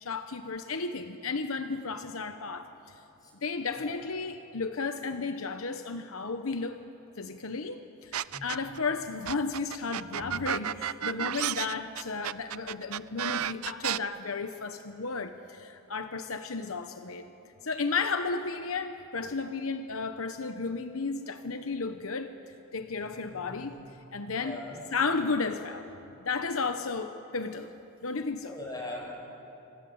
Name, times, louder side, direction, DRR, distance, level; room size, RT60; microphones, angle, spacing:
voice 1, 0.0-2.9 3.4-6.8 7.2-17.3 17.6-22.3 22.7-23.8 24.1-24.6 24.9-25.9 26.2-27.7 28.0-28.5, left 4 dB, 75° left, 8 dB, 1.0 m, -33 dB
sound 1, 8.1-8.8 9.3-14.0, right 10 dB, 85° right, 0.5 m, -32 dB
voice 2, 8.3-8.8 22.9-23.8 24.3-24.8 28.4-29.2, left 1 dB, 20° left, -1 dB, 6.4 m, -42 dB
26.5 x 26.0 x 7.9 m, 2.9 s
head